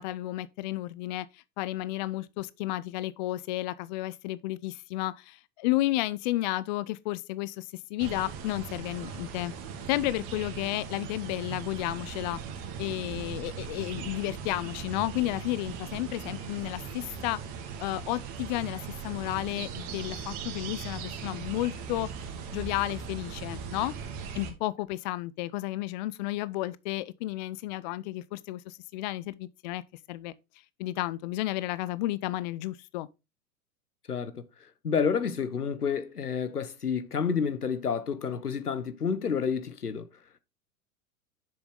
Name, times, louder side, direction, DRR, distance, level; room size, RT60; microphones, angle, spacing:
voice 1, 0.0-9.5 9.9-12.4 12.8-17.4 17.8-22.1 22.5-23.9 24.3-29.8 30.1-30.3 30.8-33.1, left 17 dB, 35° left, 0.4 m, -32 dB
sound 1, 8.0-24.5, right 6 dB, 45° right, 2.0 m, -39 dB
voice 2, 34.1-34.4 34.8-40.1, left 6 dB, 85° left, 1.1 m, -29 dB
6.9 x 6.3 x 3.6 m
figure-of-eight pair, 95°, 44 cm